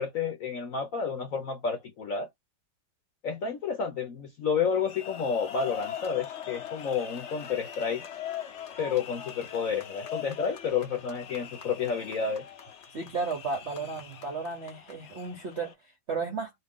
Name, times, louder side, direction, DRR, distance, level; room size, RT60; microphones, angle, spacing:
voice 1, 0.0-2.3 3.2-8.0 8.8-12.5, left 6 dB, 65° left, 0.8 m, -30 dB
sound 1, 4.7-15.7, left 10 dB, 85° left, 0.6 m, -41 dB
voice 2, 12.9-16.5, right 4 dB, 60° right, 0.7 m, -34 dB
2.9 x 2.8 x 3.5 m
omnidirectional pair, 2.2 m